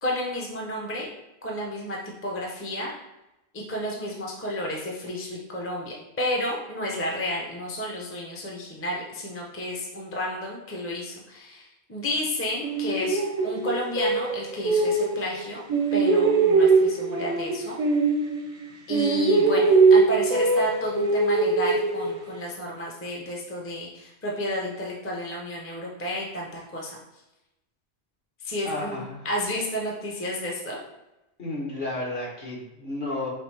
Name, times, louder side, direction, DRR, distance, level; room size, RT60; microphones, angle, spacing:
voice 1, 0.0-1.1 1.4-2.9 3.5-15.6 15.9-17.8 18.9-27.0 28.4-30.8, left 1 dB, 15° left, -2 dB, 0.6 m, -31 dB
sound 1, 12.6-15.4 15.7-18.6 18.9-22.4, right 4 dB, 45° right, 0.6 m, -22 dB
voice 2, 28.6-29.3 31.4-33.3, left 2 dB, 50° left, -5 dB, 1.4 m, -32 dB
6.0 x 2.5 x 3.3 m, 0.95 s
omnidirectional pair, 1.1 m